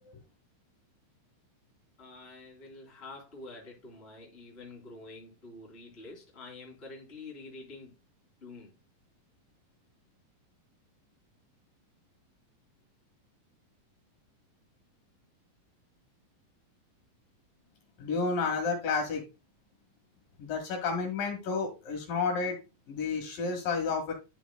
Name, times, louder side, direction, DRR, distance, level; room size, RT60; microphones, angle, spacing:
voice 1, 2.0-8.0 8.4-8.7, left 3 dB, 20° left, 2.8 m, -47 dB
voice 2, 18.0-19.2 20.4-22.6 22.9-24.1, left 4 dB, 75° left, 3.5 m, -31 dB
11.0 x 6.0 x 2.2 m
omnidirectional pair, 4.0 m